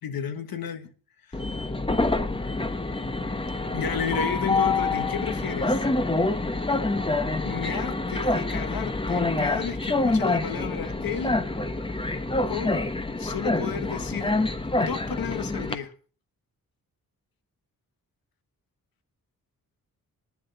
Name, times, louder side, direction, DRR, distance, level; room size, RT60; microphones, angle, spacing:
voice 1, 0.0-0.9 1.3-1.7 3.7-5.8 7.4-11.4 12.5-12.8 13.2-14.3 14.7-15.9, left 8 dB, 85° left, 1.6 m, -32 dB
Train, 1.3-15.7, left 2 dB, 15° left, 1.1 m, -26 dB
10.5 x 7.6 x 7.0 m
cardioid pair, 95°, 34 cm